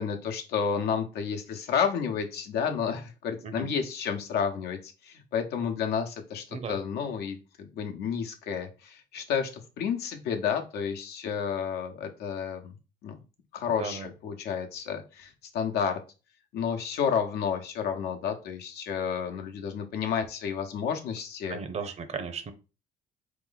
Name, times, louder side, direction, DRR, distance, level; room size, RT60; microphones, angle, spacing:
voice 1, 0.0-12.7 13.0-13.1 13.5-16.0 16.5-21.6, left 7 dB, 75° left, 4 dB, 0.9 m, -31 dB
voice 2, 13.7-14.1 21.5-22.5, right 5 dB, 40° right, 9 dB, 0.7 m, -36 dB
3.9 x 3.1 x 3.9 m, 0.32 s
cardioid pair, 110°, 17 cm